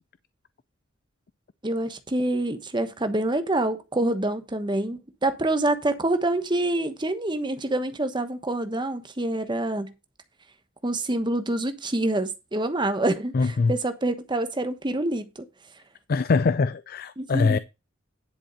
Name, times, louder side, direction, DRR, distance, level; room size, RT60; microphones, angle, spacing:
voice 1, 1.6-9.9 10.8-15.2 17.2-17.6, right 1 dB, 25° right, 1.1 m, -26 dB
voice 2, 13.3-13.7 16.1-17.6, left 4 dB, 50° left, 0.4 m, -23 dB
10.5 x 4.4 x 6.7 m
head